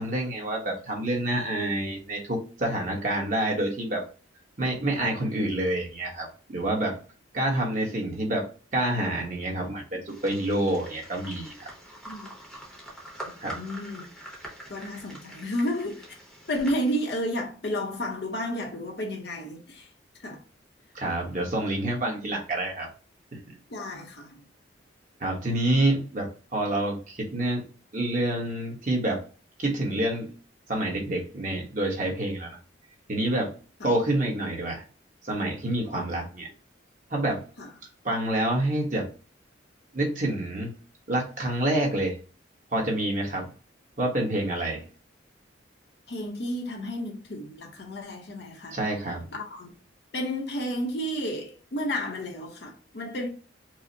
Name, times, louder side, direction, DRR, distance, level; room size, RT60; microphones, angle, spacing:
voice 1, 0.0-4.0 4.6-7.0 7.3-8.5 8.7-11.7 13.4-13.6 20.9-22.9 23.3-23.6 25.2-27.6 27.9-29.2 29.6-30.3 30.7-32.6 33.1-33.5 33.8-34.8 35.2-36.5 37.1-37.4 38.0-39.1 39.9-40.7 41.1-42.2 42.7-43.5 44.0-44.8 48.7-49.3, right 1 dB, 40° right, 1.1 m, -27 dB
sound 1, 10.1-17.4, right 1 dB, 5° left, 0.8 m, -44 dB
voice 2, 13.3-14.1 14.7-16.1 16.5-19.9 20.2-20.4 23.7-24.4 35.8-35.9 37.6-37.7 46.1-48.8 49.3-49.7 50.1-53.3, equal, 60° left, 0.8 m, -32 dB
4.7 x 2.1 x 2.7 m
head